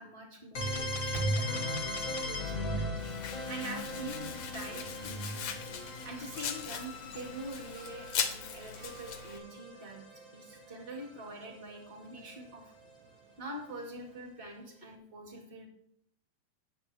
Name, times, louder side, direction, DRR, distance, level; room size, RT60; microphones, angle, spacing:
voice 1, 0.0-5.6 6.0-10.0 10.3-12.7 13.4-15.7, right 1 dB, 30° right, 1 dB, 1.0 m, -45 dB
sound 1, 0.5-10.3, equal, 60° left, 0.8 m, -37 dB
Domestic sounds home sounds, 3.0-9.4, left 8 dB, 80° left, 1.5 m, -40 dB
sound 2, 5.4-14.3, right 6 dB, 80° right, 3.5 m, -57 dB
19.0 x 7.7 x 3.4 m, 0.69 s
omnidirectional pair, 4.4 m